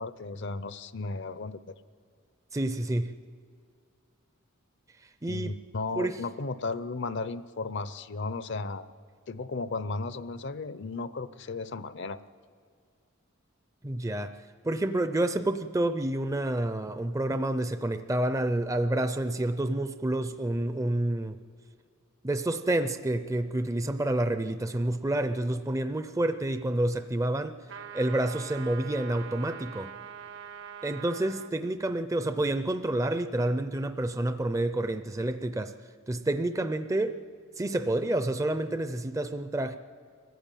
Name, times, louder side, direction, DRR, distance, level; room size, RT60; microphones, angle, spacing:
voice 1, 0.0-1.7 5.3-8.9 9.3-12.2, left 3 dB, 55° left, 14 dB, 0.6 m, -35 dB
voice 2, 2.5-3.2 5.2-5.6 5.9-6.2 13.8-14.4 14.6-21.4 22.2-27.6 27.9-29.9 30.8-35.8 36.1-37.2 37.6-39.8, right 1 dB, 15° right, 10 dB, 0.5 m, -29 dB
sound 1, 27.7-31.5, right 7 dB, 55° right, 0.8 m, -43 dB
23.0 x 15.5 x 9.1 m, 2.2 s
head